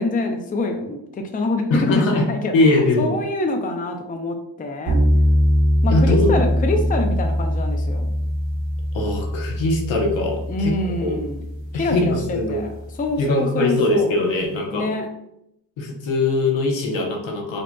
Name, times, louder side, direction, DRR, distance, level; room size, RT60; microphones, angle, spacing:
voice 1, 0.0-5.0 5.8-8.1 10.5-11.4 11.8-14.2 14.7-15.1, left 2 dB, 20° left, 4 dB, 0.4 m, -25 dB
voice 2, 1.7-2.3 2.5-3.2 5.9-6.4 8.9-10.7 11.0-11.2 11.7-12.6 13.2-14.9 15.8-17.6, left 2 dB, 85° left, 0 dB, 1.1 m, -21 dB
sound 1, 4.9-13.0, equal, 85° right, 0.9 m, -22 dB
5.2 x 2.8 x 2.2 m, 0.81 s
cardioid pair, 105°, 44 cm